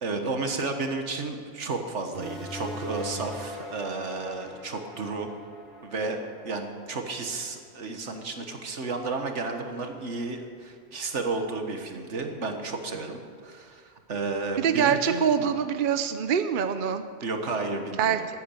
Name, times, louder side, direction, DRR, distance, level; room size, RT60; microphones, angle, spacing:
voice 1, 0.0-5.3 5.8-15.5 17.2-18.3, right 3 dB, 75° right, 5 dB, 1.7 m, -32 dB
sound 1, 2.1-7.3, left 1 dB, ahead, 4.5 m, -41 dB
voice 2, 14.6-17.1 18.0-18.2, right 7 dB, 55° right, 9 dB, 0.7 m, -24 dB
14.5 x 9.3 x 8.4 m, 2.2 s
omnidirectional pair, 1.2 m